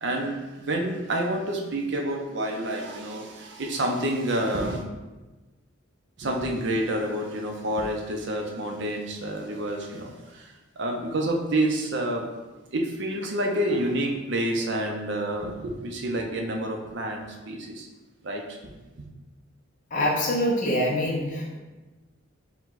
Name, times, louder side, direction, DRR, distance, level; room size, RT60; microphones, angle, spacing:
voice 1, 0.0-4.8 6.2-12.2 12.7-17.9 18.2-18.7, right 1 dB, 60° right, 1 dB, 0.6 m, -28 dB
voice 2, 19.9-21.6, equal, 40° left, -3 dB, 0.7 m, -25 dB
4.6 x 2.3 x 4.0 m, 1.2 s
head